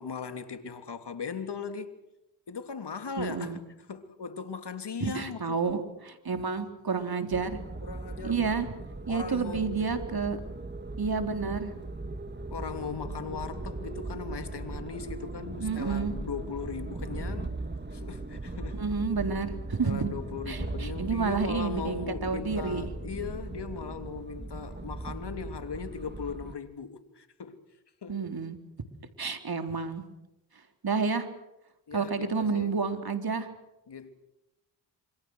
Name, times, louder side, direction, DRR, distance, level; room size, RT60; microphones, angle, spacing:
voice 1, 0.0-1.9 2.5-3.6 3.9-5.9 7.8-8.7 9.1-9.8 12.5-17.5 17.9-18.8 19.8-27.7 28.0-28.3 31.9-32.7 33.9-34.1, left 6 dB, 60° left, 3.2 m, -38 dB
voice 2, 3.2-3.6 5.0-7.6 8.2-8.7 9.1-10.4 11.0-11.7 15.6-16.1 18.8-20.2 20.5-22.9 28.1-28.6 29.2-30.0 30.8-31.3 31.9-33.5, right 5 dB, 50° right, 3.9 m, -30 dB
sound 1, 7.3-26.6, right 2 dB, 20° right, 2.6 m, -38 dB
27.5 x 25.5 x 6.5 m
supercardioid pair, 45°, 46 cm